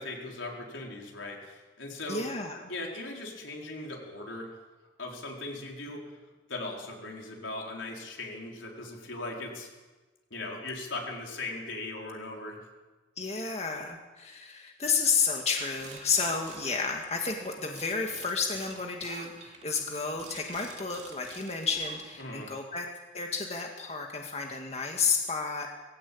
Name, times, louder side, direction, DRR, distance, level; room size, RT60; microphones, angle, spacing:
voice 1, 0.0-2.3 2.7-4.5 5.0-6.0 6.5-9.7 10.3-12.6 22.2-22.5, left 2 dB, 85° left, 0 dB, 4.9 m, -39 dB
voice 2, 2.1-2.6 13.2-22.9 23.1-25.7, left 5 dB, 35° left, 2 dB, 2.0 m, -31 dB
sound 1, 15.8-17.4 17.7-22.4, right 5 dB, 35° right, 2.8 m, -49 dB
20.5 x 16.5 x 8.7 m, 1.2 s
head